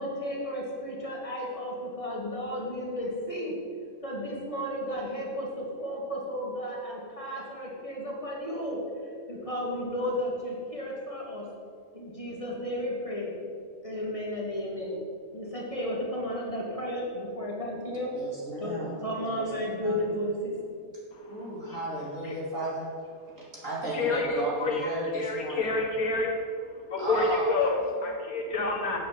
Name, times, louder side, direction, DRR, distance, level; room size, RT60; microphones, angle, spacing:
voice 1, 0.0-3.5 4.0-11.5 11.9-13.4 13.8-15.0 15.3-18.1 18.6-20.6, equal, 20° left, -4 dB, 2.2 m, -33 dB
voice 2, 18.1-20.0 21.3-22.9 23.4-25.8 27.0-28.1, right 2 dB, 60° right, -6 dB, 3.2 m, -35 dB
voice 3, 23.9-26.4 26.9-27.7 28.0-29.0, left 3 dB, 75° left, 0 dB, 2.0 m, -28 dB
8.5 x 7.5 x 7.5 m, 2.3 s
omnidirectional pair, 1.5 m